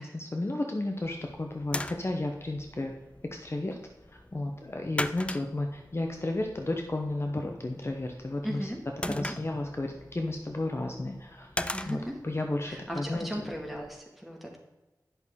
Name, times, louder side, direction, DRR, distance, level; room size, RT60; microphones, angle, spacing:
voice 1, 0.0-2.9 3.3-3.8 4.1-8.7 9.1-12.0 12.2-13.5, left 2 dB, 35° left, 3 dB, 0.9 m, -33 dB
sound 1, 0.9-14.0, left 1 dB, 15° left, 0.4 m, -41 dB
voice 2, 8.4-8.8 9.1-9.3 11.7-12.2 12.7-14.6, equal, ahead, -1 dB, 1.9 m, -37 dB
10.5 x 6.4 x 3.6 m, 1.1 s
wide cardioid pair, 70°, 7 cm